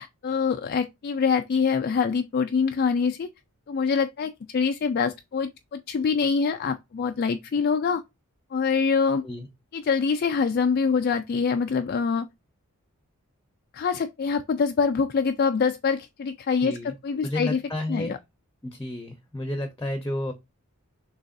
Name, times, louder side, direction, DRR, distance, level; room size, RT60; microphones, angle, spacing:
voice 1, 0.0-3.3 3.7-8.0 8.5-9.2 9.7-12.3 13.7-17.6 17.9-18.2, left 5 dB, 45° left, 0.3 m, -25 dB
voice 2, 16.6-16.9 17.2-18.1 18.6-20.3, left 1 dB, 10° left, 0.7 m, -31 dB
6.3 x 3.1 x 2.5 m
head